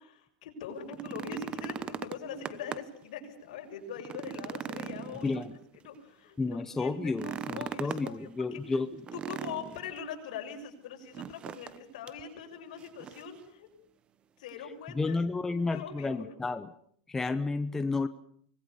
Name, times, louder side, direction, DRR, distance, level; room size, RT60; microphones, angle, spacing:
voice 1, 0.0-5.4 5.8-8.8 9.1-13.7 14.4-16.3, left 6 dB, 70° left, 3 dB, 6.7 m, -42 dB
sound 1, 0.8-3.0 3.4-3.5 4.0-5.9 7.1-8.2 9.1-10.0 11.1-11.8 12.1-12.2 12.8-13.4 14.5-14.6, right 8 dB, 25° right, 1.1 m, -40 dB
voice 2, 5.2-5.6 6.4-8.9 14.9-16.7 17.1-18.1, left 3 dB, 10° left, 11 dB, 0.9 m, -31 dB
25.5 x 20.5 x 7.0 m, 0.64 s
supercardioid pair, 135°, 4 cm